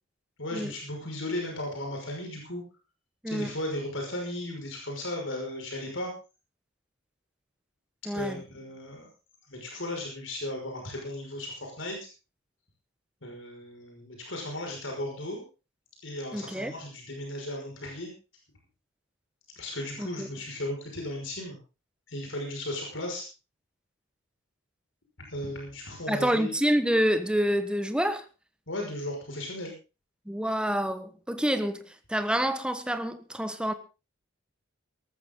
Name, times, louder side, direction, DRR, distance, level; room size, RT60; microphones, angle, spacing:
voice 1, 0.4-2.6 3.3-6.1 8.1-9.1 9.5-12.0 13.2-15.4 16.0-18.1 19.6-21.6 22.1-23.2 25.2-26.5 28.7-29.7, left 1 dB, 70° left, 1 dB, 5.7 m, -36 dB
voice 2, 8.0-8.4 16.3-16.7 20.0-20.3 26.1-28.3 30.3-33.7, equal, 5° right, 10 dB, 1.3 m, -27 dB
18.5 x 14.0 x 3.9 m, 0.32 s
head